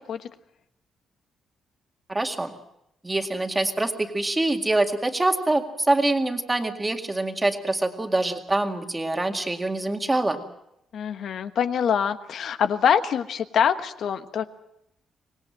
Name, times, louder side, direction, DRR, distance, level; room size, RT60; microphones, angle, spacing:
voice 1, 2.1-2.5 3.0-10.4, right 2 dB, 10° right, 5 dB, 2.1 m, -25 dB
voice 2, 10.9-14.4, left 8 dB, 60° left, 9 dB, 1.3 m, -24 dB
25.0 x 20.0 x 7.6 m, 0.80 s
cardioid pair, 160°, 0 cm